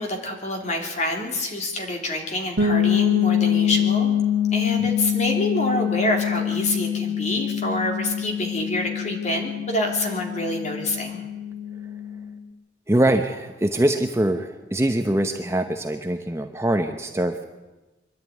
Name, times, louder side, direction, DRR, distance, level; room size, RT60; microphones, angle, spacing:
voice 1, 0.0-4.1 4.5-11.2, left 1 dB, 35° left, 2 dB, 3.3 m, -27 dB
sound 1, 2.6-12.3, left 8 dB, 60° right, 2.4 m, -24 dB
voice 2, 12.9-17.5, right 1 dB, 15° right, 6 dB, 0.8 m, -23 dB
25.0 x 11.5 x 9.4 m, 1.1 s
head